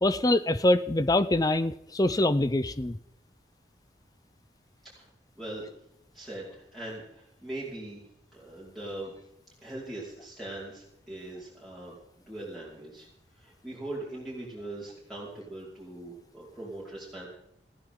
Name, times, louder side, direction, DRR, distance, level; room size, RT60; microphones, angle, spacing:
voice 1, 0.0-3.0, left 1 dB, 20° left, 13 dB, 0.5 m, -24 dB
voice 2, 5.4-5.7 6.1-8.0 8.3-9.2 9.6-12.0 12.3-13.1 13.4-17.3, right 1 dB, ahead, -7 dB, 5.0 m, -41 dB
20.0 x 15.5 x 3.9 m, 0.78 s
head